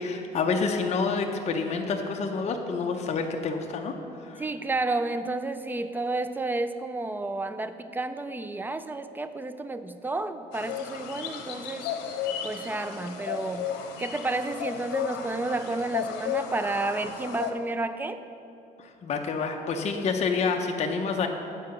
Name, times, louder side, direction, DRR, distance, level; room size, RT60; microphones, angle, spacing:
voice 1, 0.0-4.4 18.8-21.3, left 4 dB, 40° left, 3 dB, 0.7 m, -28 dB
voice 2, 4.4-11.9 12.4-18.2, right 2 dB, 10° right, 11 dB, 0.3 m, -31 dB
sound 1, 10.5-17.5, left 8 dB, 90° left, 0.8 m, -34 dB
8.8 x 4.7 x 6.5 m, 2.7 s
cardioid pair, 110°, 17 cm